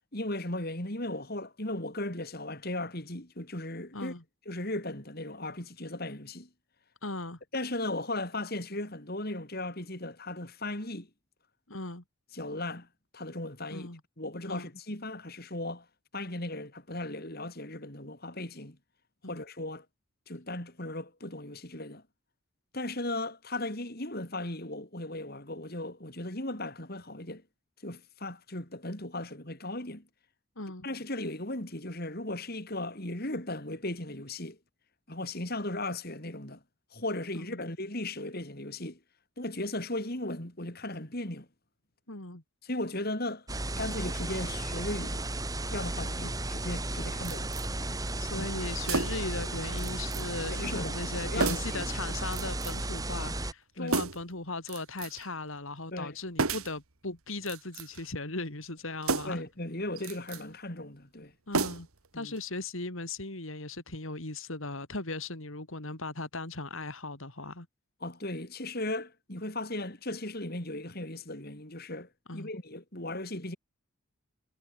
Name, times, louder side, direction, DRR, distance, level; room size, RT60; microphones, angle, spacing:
voice 1, 0.1-4.1 4.5-6.5 7.5-11.1 12.3-12.9 13.1-13.9 14.2-15.9 16.1-18.8 19.3-19.9 20.3-22.0 22.7-27.4 27.8-30.0 30.8-34.6 35.1-36.6 36.9-39.0 39.4-41.5 42.6-43.5 43.8-45.3 45.7-47.6 48.3-48.5 50.6-51.8 53.8-54.0 55.9-56.2 59.2-61.3 62.1-62.3 68.0-73.6, left 1 dB, 45° left, 4.0 m, -37 dB
voice 2, 3.9-4.2 7.0-7.4 11.7-12.0 13.7-14.0 14.5-14.7 19.2-19.4 30.6-30.9 37.3-37.6 42.1-42.4 46.1-46.3 48.2-59.4 61.5-61.9 62.1-67.7 72.3-72.5, left 2 dB, 65° left, 3.3 m, -38 dB
sound 1, 43.5-53.5, right 2 dB, 15° right, 2.4 m, -34 dB
sound 2, 47.2-47.7 48.8-49.3 49.8-50.3 50.5-50.6 51.4-51.8 52.3-52.9 53.9-54.3 54.7-55.3 56.4-56.8 57.4-58.1 59.0-59.5 60.0-60.4 61.5-62.1 62.4-62.5, right 4 dB, 80° right, 2.1 m, -32 dB
head